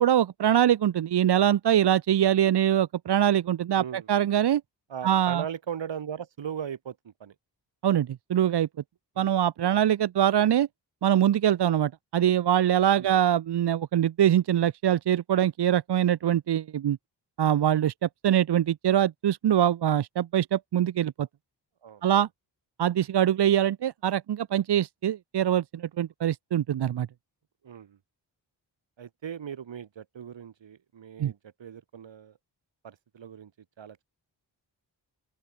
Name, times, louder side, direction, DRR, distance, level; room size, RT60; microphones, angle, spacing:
voice 1, 0.0-4.6 5.0-5.4 7.8-8.7 9.2-10.7 11.0-17.0 17.4-21.3 22.0-22.3 22.8-27.1 31.2-31.3, right 10 dB, 65° right, 0.8 m, -23 dB
voice 2, 3.7-4.1 4.9-7.3 9.2-9.3 13.0-13.1 21.8-22.1 27.6-28.0 29.0-32.4 32.8-33.5 33.8-34.0, right 8 dB, 80° right, 3.7 m, -38 dB
open air
cardioid pair, 70°, 44 cm